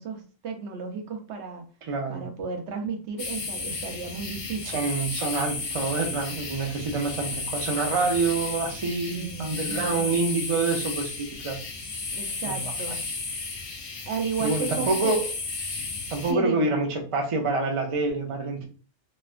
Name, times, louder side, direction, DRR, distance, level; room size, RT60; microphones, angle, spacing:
voice 1, 0.0-1.7 2.1-4.9 9.1-10.2 12.1-13.0 14.1-15.1 16.3-16.7, right 5 dB, 65° right, 4 dB, 0.9 m, -33 dB
voice 2, 1.9-2.3 4.6-11.6 12.5-12.7 14.4-15.2 16.1-18.7, right 3 dB, 50° right, 2 dB, 0.4 m, -27 dB
sound 1, 3.2-16.3, left 4 dB, 55° left, 0.9 m, -33 dB
3.2 x 2.2 x 2.3 m, 0.38 s
omnidirectional pair, 1.3 m